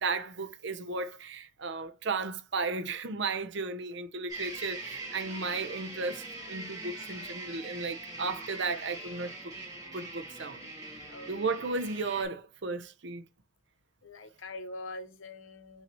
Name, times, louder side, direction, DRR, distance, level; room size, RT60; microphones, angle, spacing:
voice 1, 0.0-9.5 9.9-10.7 11.3-13.2, right 4 dB, 60° right, 0.7 m, -34 dB
sound 1, 4.3-12.3, right 2 dB, 20° right, 1.8 m, -42 dB
voice 2, 6.4-7.3 11.1-11.3 14.0-15.8, left 2 dB, 70° left, 0.8 m, -45 dB
5.6 x 2.8 x 3.0 m
head